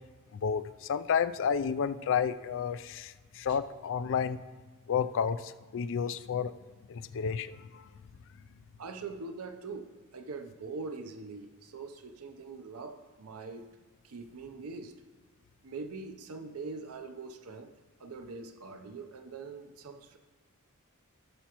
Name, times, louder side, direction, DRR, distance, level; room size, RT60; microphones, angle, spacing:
voice 1, 0.3-4.4 4.9-6.5 6.9-7.9, left 7 dB, 60° left, 13 dB, 0.4 m, -31 dB
voice 2, 8.8-13.6 14.0-14.9 15.6-17.7 18.0-20.2, right 4 dB, 75° right, 7 dB, 0.7 m, -43 dB
16.0 x 7.0 x 3.0 m, 1.4 s
head